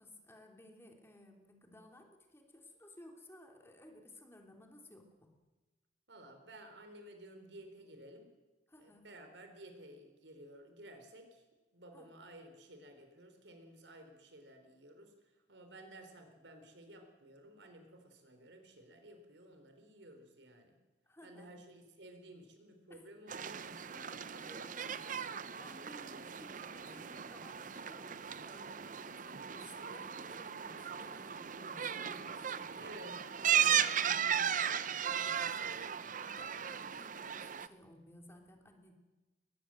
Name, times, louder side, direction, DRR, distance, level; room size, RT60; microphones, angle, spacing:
voice 1, 0.0-5.3 8.7-9.1 11.9-12.1 21.1-21.5 22.9-23.0 24.1-25.1 25.6-33.1 33.5-33.6 36.3-38.9, left 1 dB, 15° left, 3 dB, 3.2 m, -58 dB
voice 2, 6.1-8.3 8.8-11.4 11.7-15.1 15.5-20.8 21.2-25.4 32.7-33.2 33.5-34.8 35.1-35.9, right 1 dB, 80° right, 6 dB, 4.1 m, -54 dB
sound 1, 23.3-37.7, right 8 dB, 45° right, 0.7 m, -36 dB
23.0 x 21.0 x 7.8 m, 1.2 s
head